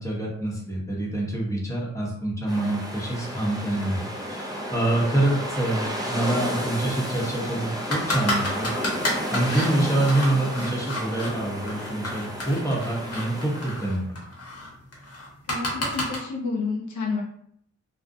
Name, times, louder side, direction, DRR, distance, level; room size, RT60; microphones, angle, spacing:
voice 1, 0.0-8.7 9.3-14.2, right 1 dB, 10° left, -3 dB, 0.9 m, -26 dB
sound 1, 2.5-14.0, equal, 15° right, 0.5 m, -32 dB
sound 2, 7.9-11.3 11.7-16.2, left 1 dB, 55° left, 0.9 m, -31 dB
voice 2, 15.5-17.2, left 4 dB, 85° left, 0 dB, 0.5 m, -29 dB
2.4 x 2.1 x 2.6 m, 0.71 s
cardioid pair, 55°, 29 cm